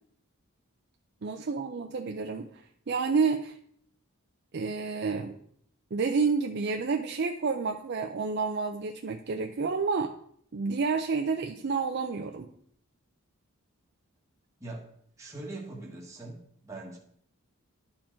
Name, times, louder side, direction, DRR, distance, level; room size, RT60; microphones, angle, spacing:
voice 1, 1.2-3.6 4.5-5.4 5.9-10.1 10.5-12.5, right 4 dB, 50° right, 4 dB, 0.5 m, -29 dB
voice 2, 14.6-17.0, right 2 dB, 15° right, -3 dB, 1.3 m, -42 dB
11.5 x 4.4 x 4.4 m, 0.66 s
head